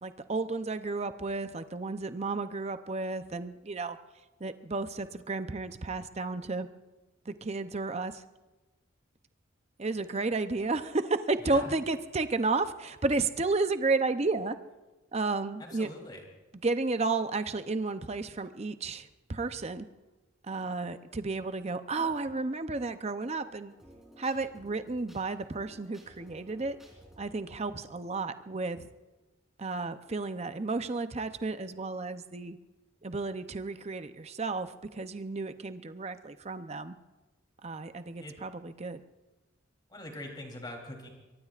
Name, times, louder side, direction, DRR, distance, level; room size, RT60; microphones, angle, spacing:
voice 1, 0.0-4.0 4.4-6.7 7.3-8.2 9.8-14.6 15.1-15.9 16.6-19.9 20.5-23.7 24.2-26.8 27.2-28.8 29.6-32.6 33.0-36.9 37.6-39.0, right 3 dB, 30° right, 10 dB, 0.7 m, -32 dB
voice 2, 15.6-16.2 38.2-38.4 39.9-41.1, left 1 dB, 20° left, 1 dB, 3.3 m, -43 dB
sound 1, 23.7-29.2, equal, ahead, 3.6 m, -57 dB
23.5 x 23.0 x 2.5 m, 1.1 s
head